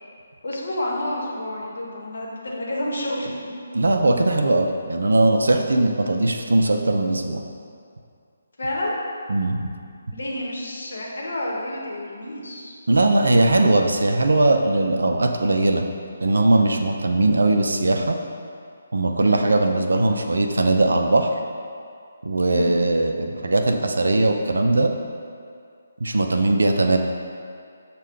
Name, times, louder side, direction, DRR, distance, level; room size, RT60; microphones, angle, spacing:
voice 1, 0.4-3.3 6.0-6.2 8.6-9.0 10.1-12.8 19.2-19.6 22.5-22.8, left 1 dB, 65° left, -3 dB, 0.9 m, -29 dB
voice 2, 3.7-7.4 9.3-9.7 12.9-15.8 16.2-18.2 18.9-21.3 22.2-24.9 26.0-27.0, right 2 dB, 70° right, 4 dB, 0.3 m, -19 dB
6.3 x 2.2 x 3.5 m, 2.3 s
figure-of-eight pair, 145°, 0 cm